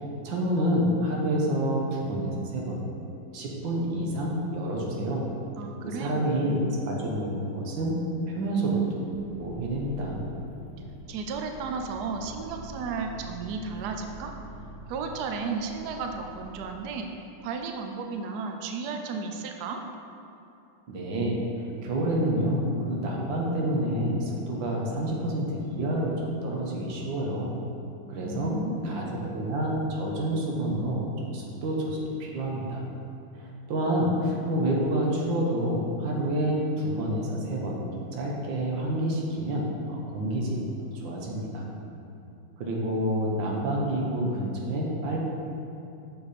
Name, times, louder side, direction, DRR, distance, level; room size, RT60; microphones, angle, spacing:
voice 1, 0.2-2.8 3.3-5.2 5.8-8.0 8.3-9.0 9.4-10.2 20.9-21.4 21.8-27.5 28.1-28.6 28.8-32.8 33.4-40.6 40.9-41.7 42.6-45.2, right 1 dB, 65° right, -2 dB, 1.6 m, -28 dB
voice 2, 5.6-6.8 11.1-14.3 14.9-17.1 17.4-19.8 28.2-29.2, right 4 dB, 85° right, 4 dB, 0.8 m, -34 dB
sound 1, 9.0-16.8, right 2 dB, 40° left, 1.0 m, -45 dB
6.7 x 5.7 x 4.2 m, 2.8 s
omnidirectional pair, 2.4 m